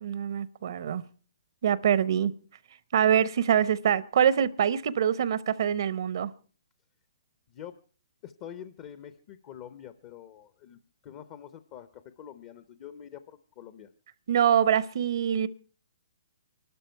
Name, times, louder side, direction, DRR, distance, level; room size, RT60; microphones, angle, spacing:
voice 1, 0.0-1.0 1.6-2.3 2.9-6.3 14.3-15.5, right 9 dB, 60° right, 18 dB, 0.7 m, -24 dB
voice 2, 8.2-13.9, left 10 dB, 35° left, 12 dB, 0.7 m, -46 dB
24.0 x 12.5 x 4.5 m, 0.41 s
hypercardioid pair, 150°, 2 cm